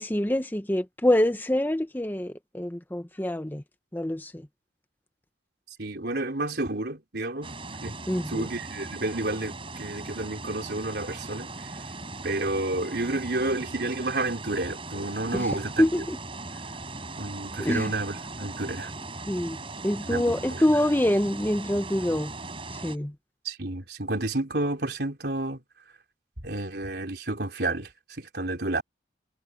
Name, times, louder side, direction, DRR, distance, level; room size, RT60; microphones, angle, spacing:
voice 1, 0.0-3.6 3.9-4.5 8.1-8.5 15.3-16.2 17.6-17.9 19.3-19.6 19.8-22.3 22.7-23.1, left 1 dB, 10° left, 0.8 m, -26 dB
voice 2, 5.8-7.5 7.8-11.7 12.2-15.8 17.2-18.9 20.1-20.6 23.4-25.6 26.4-28.8, right 2 dB, 65° right, 4.3 m, -30 dB
sound 1, 7.4-23.0, right 3 dB, 30° right, 7.9 m, -39 dB
head